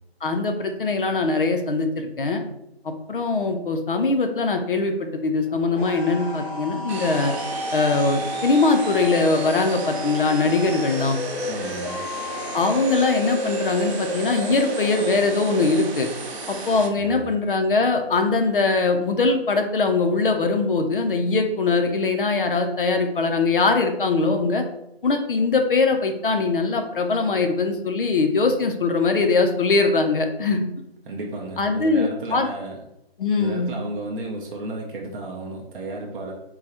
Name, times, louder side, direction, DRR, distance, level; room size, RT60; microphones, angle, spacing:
voice 1, 0.2-2.4 2.8-7.3 7.7-11.2 12.5-16.1 16.5-24.6 25.0-30.7 31.6-32.5 33.2-33.7, left 3 dB, 55° left, 5 dB, 0.5 m, -22 dB
sound 1, 5.4-15.8, equal, 10° left, 0.6 m, -31 dB
sound 2, 6.9-16.9, right 3 dB, 90° right, 0.8 m, -34 dB
voice 2, 11.5-12.1 16.9-17.3 31.0-32.8 33.3-36.3, right 2 dB, 55° right, -2 dB, 0.6 m, -33 dB
3.8 x 2.0 x 2.8 m, 0.84 s
hypercardioid pair, 175°, 31 cm